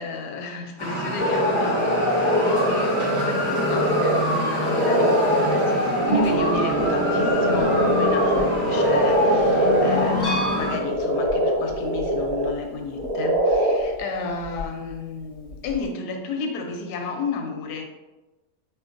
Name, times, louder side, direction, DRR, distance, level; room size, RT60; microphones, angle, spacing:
voice 1, 0.0-17.8, left 3 dB, 75° left, 3 dB, 1.1 m, -32 dB
sound 1, 0.8-10.8, left 1 dB, 25° left, 0.7 m, -25 dB
sound 2, 1.2-12.5 12.9-13.9, equal, 60° right, 1.4 m, -23 dB
Harp, 6.1-13.5 13.8-14.9 15.2-15.8, right 2 dB, 45° left, 0.9 m, -32 dB
4.6 x 2.6 x 2.5 m, 1.1 s
omnidirectional pair, 1.8 m